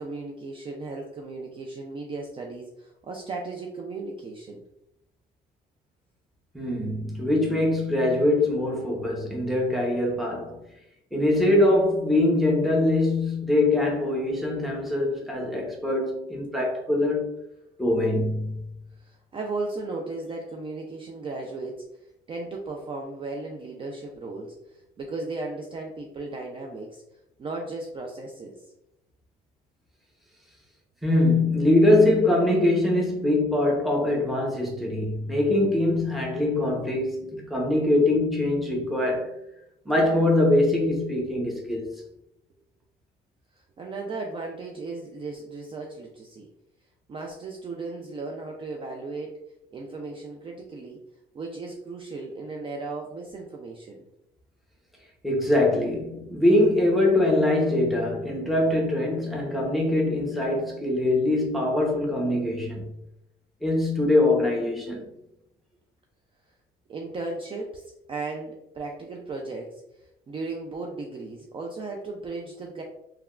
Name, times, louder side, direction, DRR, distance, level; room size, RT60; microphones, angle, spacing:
voice 1, 0.0-4.6 19.0-21.8 22.3-27.0 27.4-28.6 43.8-46.5 47.1-49.4 49.7-51.0 51.3-54.0 66.9-69.8 70.3-72.8, right 3 dB, 30° right, 0.4 m, -36 dB
voice 2, 6.5-10.6 11.1-17.3 17.8-18.7 31.0-39.3 39.8-42.0 55.2-62.9 63.6-65.0, left 1 dB, ahead, 0.8 m, -23 dB
3.3 x 2.2 x 2.3 m
cardioid pair, 110°, 17 cm